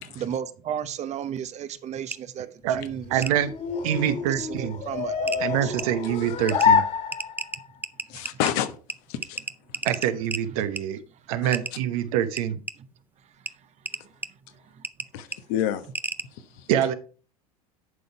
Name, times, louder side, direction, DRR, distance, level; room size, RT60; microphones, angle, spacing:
voice 1, 0.2-3.2 4.4-5.7, right 9 dB, 35° right, 0.8 m, -33 dB
sound 1, 2.1-2.2 3.2-3.3 4.7-4.8 5.3-5.4 5.8-5.9 6.5-6.7 7.1-8.5 8.9-9.0 9.2-10.4 10.8-10.9 11.5-11.7 12.4-12.7 13.5-13.6 13.8-14.3 14.8-15.1 15.3-15.4 15.9-16.2, right 3 dB, 10° right, 0.5 m, -32 dB
sound 2, 2.6-7.7, left 7 dB, 40° left, 2.1 m, -27 dB
voice 2, 3.1-3.5 3.8-4.8 5.4-6.8 9.8-11.0 11.3-12.6 16.7-16.9, right 10 dB, 65° right, 1.0 m, -25 dB
voice 3, 8.1-8.8 9.1-9.4 15.1-15.8 16.3-16.7, left 11 dB, 60° left, 1.1 m, -29 dB
11.0 x 4.0 x 4.5 m
hypercardioid pair, 85°, 19 cm